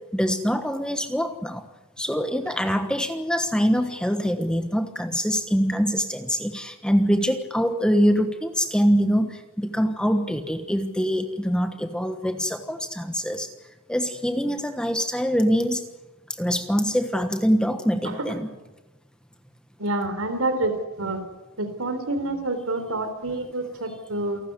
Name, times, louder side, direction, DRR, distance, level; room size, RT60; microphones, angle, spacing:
voice 1, 0.1-1.7 2.0-13.5 13.9-15.9 16.4-18.5, equal, 5° left, 7 dB, 1.2 m, -24 dB
voice 2, 19.8-21.2 21.6-24.4, right 2 dB, 65° right, 8 dB, 4.0 m, -27 dB
28.0 x 13.0 x 9.6 m, 1.1 s
head